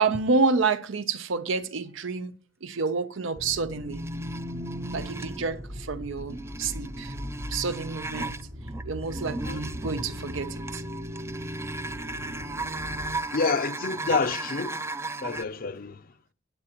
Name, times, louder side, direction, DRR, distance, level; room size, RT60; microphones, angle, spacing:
voice 1, 0.0-2.3 2.6-4.1 4.9-7.1 7.5-8.4 8.8-10.8, right 4 dB, 80° right, 0.7 m, -28 dB
sound 1, 3.3-13.2, equal, 65° right, 1.4 m, -38 dB
sound 2, 3.9-5.5 6.2-15.4, right 2 dB, 15° right, 0.4 m, -36 dB
voice 2, 13.3-14.8 15.2-16.0, left 4 dB, 50° left, 0.6 m, -28 dB
15.5 x 8.6 x 3.0 m
head